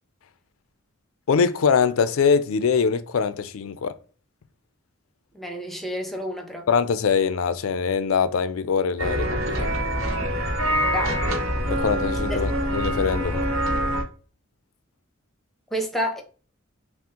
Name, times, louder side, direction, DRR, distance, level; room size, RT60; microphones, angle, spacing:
voice 1, 1.3-3.9 6.7-9.7 11.7-13.5, left 6 dB, 85° left, 0.4 m, -23 dB
voice 2, 5.3-6.7 10.9-11.2 12.3-12.4 15.7-16.2, equal, ahead, 0.7 m, -29 dB
sound 1, 9.0-14.0, equal, 70° right, 1.1 m, -25 dB
5.9 x 2.0 x 2.8 m
head